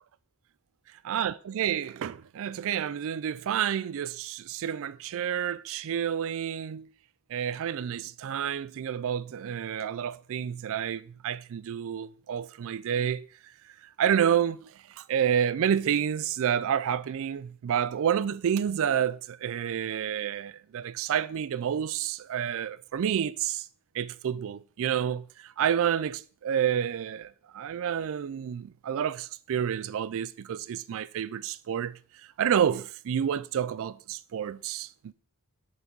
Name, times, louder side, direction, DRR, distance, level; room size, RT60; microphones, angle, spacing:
voice 1, 1.1-6.9 7.3-13.3 14.0-14.7 15.0-23.6 23.9-32.0 32.4-35.1, right 8 dB, 60° right, 0.3 m, -29 dB
6.5 x 4.7 x 5.2 m
head